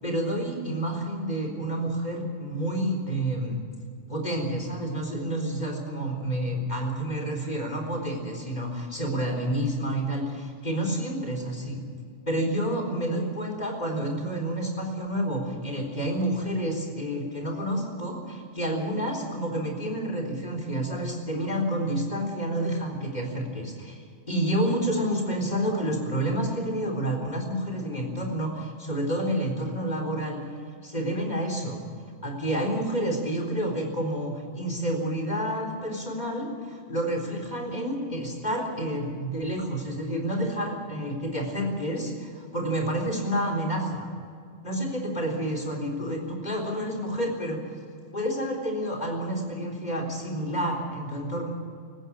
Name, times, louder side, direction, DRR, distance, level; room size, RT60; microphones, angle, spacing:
voice 1, 0.0-3.6 4.1-11.8 12.3-30.4 30.8-31.8 32.2-44.1 44.6-47.6 48.1-51.5, right 1 dB, 35° left, 1 dB, 4.1 m, -29 dB
19.0 x 16.0 x 8.7 m, 2.2 s
omnidirectional pair, 1.2 m